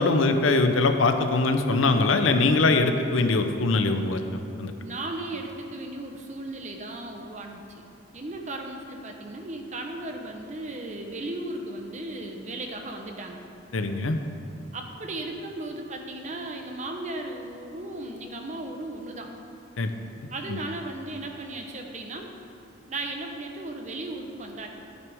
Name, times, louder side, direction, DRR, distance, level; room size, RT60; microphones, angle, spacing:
voice 1, 0.0-4.2 4.6-4.7 13.7-14.2 19.8-19.9 20.5-20.6, left 3 dB, 85° left, 7 dB, 0.7 m, -22 dB
voice 2, 4.8-7.9 8.1-13.4 14.7-19.3 20.3-22.3 22.9-24.7, right 2 dB, 35° right, 3 dB, 0.9 m, -36 dB
12.5 x 9.2 x 3.5 m, 2.7 s
head